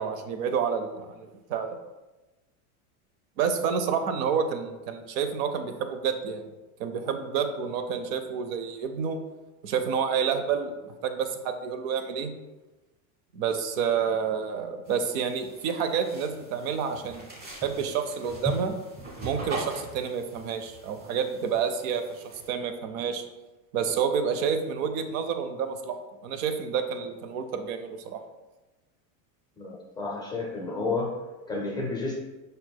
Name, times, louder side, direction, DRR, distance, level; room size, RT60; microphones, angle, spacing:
voice 1, 0.0-1.8 3.4-6.5 6.8-9.2 9.6-10.7 11.0-12.3 13.3-17.3 17.6-18.8 19.2-23.2 23.7-26.0 26.2-28.2, right 7 dB, 70° right, 8 dB, 0.7 m, -29 dB
sound 1, 14.8-22.5, right 1 dB, 20° right, 1.2 m, -40 dB
voice 2, 29.6-31.2 31.5-32.1, left 3 dB, 10° left, -2 dB, 0.4 m, -31 dB
5.2 x 4.4 x 2.2 m, 1.1 s
supercardioid pair, 150°, 43 cm